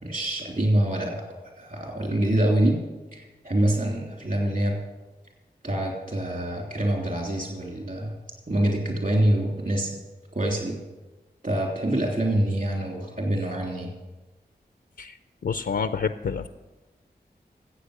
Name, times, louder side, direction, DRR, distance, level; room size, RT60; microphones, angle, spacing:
voice 1, 0.0-1.3 1.6-2.8 3.1-4.8 5.6-8.2 8.5-9.9 10.3-10.8 11.4-13.9, right 1 dB, 50° right, 0 dB, 3.3 m, -25 dB
voice 2, 15.4-16.5, left 6 dB, 85° left, 10 dB, 0.5 m, -28 dB
15.0 x 8.0 x 6.5 m, 1.1 s
cardioid pair, 45°, 17 cm